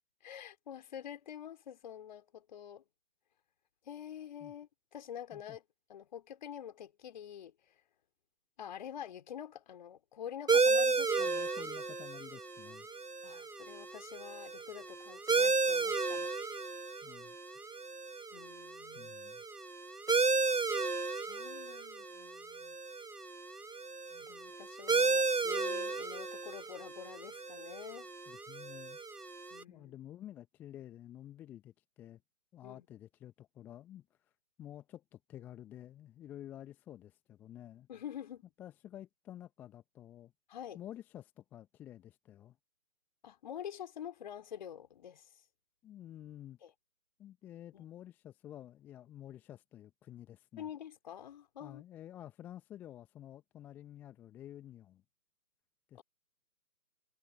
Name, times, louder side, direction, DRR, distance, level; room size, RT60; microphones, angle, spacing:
voice 1, 0.2-2.8 3.8-5.6 5.9-7.8 8.6-11.5 13.2-16.3 18.3-19.1 21.1-22.8 24.1-28.1 29.5-29.9 32.6-32.9 37.9-38.5 40.5-40.8 43.2-45.3 46.6-46.7 47.7-47.9 50.6-51.8, left 9 dB, 30° left, 4.2 m, -47 dB
sound 1, 10.5-29.6, right 4 dB, 85° right, 1.4 m, -34 dB
voice 2, 11.2-12.9 17.0-17.7 18.9-19.4 28.3-29.0 29.7-32.2 32.5-34.3 34.6-37.9 38.6-40.3 40.7-42.6 45.8-46.6 47.2-50.7 51.6-55.0 55.9-56.0, left 12 dB, 5° left, 1.2 m, -51 dB
figure-of-eight pair, 145°, 45 cm